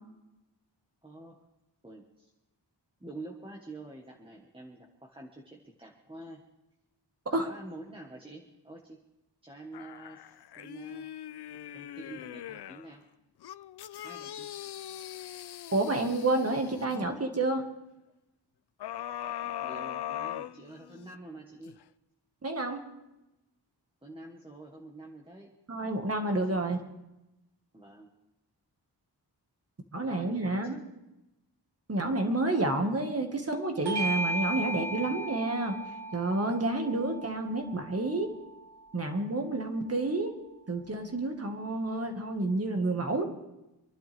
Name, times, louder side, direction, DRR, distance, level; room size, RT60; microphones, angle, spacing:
voice 1, 1.0-1.4 1.8-2.3 3.0-6.4 7.3-9.0 9.4-11.3 11.7-13.0 14.0-14.5 19.4-21.8 24.0-25.5 26.3-26.8 27.7-28.1 30.0-30.7, right 2 dB, 10° right, -1 dB, 1.5 m, -47 dB
sound 1, 9.7-12.9 13.4-17.1 18.8-21.1 21.7-21.8, left 11 dB, 65° left, 0.5 m, -40 dB
voice 2, 15.7-17.6 22.4-22.8 25.7-26.8 29.9-30.8 31.9-35.7 36.1-38.3 38.9-40.4 40.7-43.3, right 2 dB, 35° right, 4 dB, 1.9 m, -29 dB
Bell / Doorbell, 33.8-38.7, right 1 dB, 70° right, 1.2 m, -36 dB
26.0 x 11.5 x 3.5 m, 0.94 s
wide cardioid pair, 120°, 43 cm